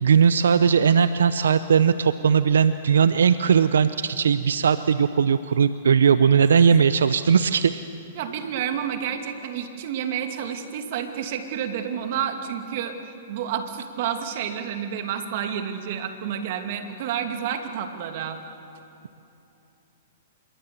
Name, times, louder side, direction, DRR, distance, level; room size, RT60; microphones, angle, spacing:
voice 1, 0.0-7.8, right 7 dB, 75° right, 13 dB, 0.6 m, -19 dB
voice 2, 8.1-13.0 13.3-18.4, right 8 dB, 55° right, 6 dB, 2.6 m, -30 dB
26.5 x 22.5 x 7.0 m, 2.8 s
hypercardioid pair, 120°, 0 cm